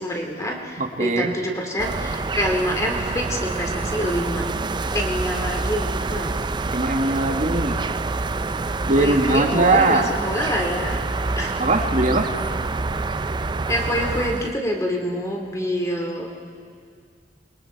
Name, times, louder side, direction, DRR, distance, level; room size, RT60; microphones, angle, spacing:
voice 1, 0.0-4.4 4.9-6.4 9.0-11.0 11.4-11.5 13.7-16.3, equal, 20° left, 1 dB, 2.5 m, -26 dB
voice 2, 0.8-1.3 6.7-7.8 8.9-10.1 11.6-12.3, right 2 dB, 45° right, 5 dB, 1.5 m, -20 dB
sound 1, 1.8-14.6, right 3 dB, 25° right, 0.4 m, -27 dB
28.0 x 22.5 x 4.5 m, 2.2 s
head